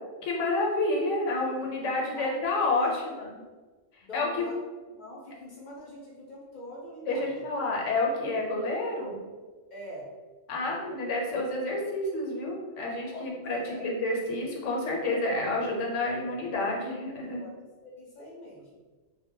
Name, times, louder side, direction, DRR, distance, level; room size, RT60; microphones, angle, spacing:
voice 1, 0.2-3.4 4.1-4.5 7.0-9.2 10.5-17.4, left 2 dB, 85° left, -1 dB, 1.0 m, -29 dB
voice 2, 1.6-3.1 4.0-4.6 4.9-7.4 9.7-10.1 13.1-13.9 17.4-17.5 17.8-18.8, left 1 dB, 50° left, -4 dB, 0.6 m, -44 dB
2.2 x 2.1 x 3.6 m, 1.3 s
omnidirectional pair, 1.2 m